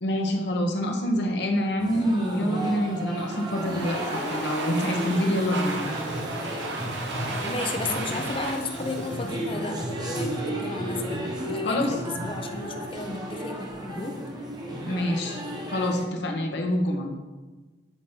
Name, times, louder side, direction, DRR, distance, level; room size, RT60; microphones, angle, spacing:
voice 1, 0.0-5.8 11.6-11.9 14.8-15.4 15.7-17.1, equal, 60° left, 2 dB, 0.9 m, -26 dB
sound 1, 1.8-16.1, right 1 dB, 20° right, 0.8 m, -33 dB
Domestic sounds home sounds, 3.3-10.2, right 2 dB, 70° right, 0.9 m, -35 dB
voice 2, 7.4-14.2, left 3 dB, 30° left, 5 dB, 0.5 m, -34 dB
8.3 x 5.1 x 2.8 m, 1.3 s
head